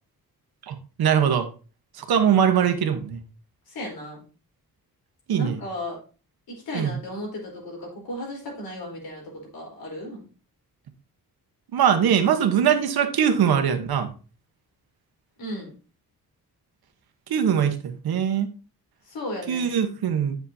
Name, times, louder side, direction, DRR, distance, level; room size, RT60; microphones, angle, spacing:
voice 1, 0.6-1.5 1.9-3.2 5.3-5.6 6.7-6.9 11.7-14.1 17.3-18.5 19.5-20.4, right 8 dB, 80° right, 7 dB, 1.2 m, -22 dB
voice 2, 3.7-4.2 5.3-6.0 6.5-10.3 15.4-15.7 19.0-19.7, left 1 dB, 75° left, -1 dB, 4.2 m, -35 dB
9.4 x 6.9 x 2.8 m, 0.36 s
wide cardioid pair, 180°, 37 cm